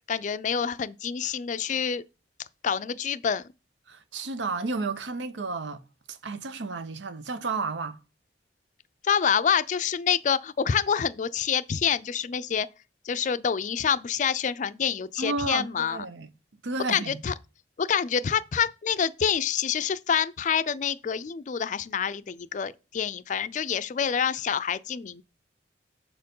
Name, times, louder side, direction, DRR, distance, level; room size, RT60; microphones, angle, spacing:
voice 1, 0.1-2.0 2.6-3.4 9.0-12.7 13.1-16.0 16.9-17.3 17.8-25.2, left 7 dB, 45° left, 0.4 m, -27 dB
voice 2, 3.9-5.8 6.1-8.0 15.2-16.3 16.6-17.2, right 3 dB, 90° right, 0.7 m, -32 dB
6.9 x 4.4 x 5.4 m
head